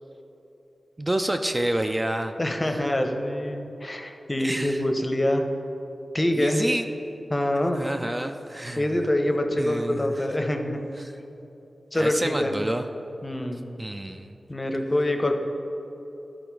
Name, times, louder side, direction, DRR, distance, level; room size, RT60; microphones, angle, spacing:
voice 1, 1.0-2.3 2.7-2.9 4.4-4.8 6.3-6.9 7.7-9.0 9.5-10.1 11.0-11.1 12.0-12.8 13.8-14.4, right 1 dB, 25° right, 6 dB, 0.4 m, -28 dB
voice 2, 2.4-5.4 6.1-6.7 7.3-7.9 8.8-10.8 11.9-12.5 13.2-13.6 14.5-15.3, left 1 dB, 30° left, 4 dB, 0.7 m, -25 dB
11.5 x 3.9 x 4.7 m, 3.0 s
cardioid pair, 50°, 0 cm